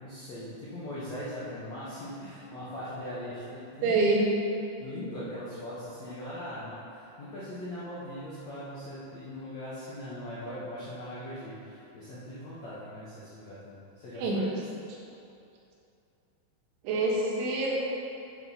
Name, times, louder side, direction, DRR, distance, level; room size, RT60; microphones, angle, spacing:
voice 1, 0.0-4.3 4.8-14.6, left 1 dB, 75° left, -10 dB, 1.6 m, -40 dB
voice 2, 3.8-4.3 14.2-14.4 16.9-17.8, right 2 dB, 90° right, -3 dB, 3.8 m, -26 dB
8.2 x 6.4 x 5.4 m, 2.7 s
omnidirectional pair, 5.4 m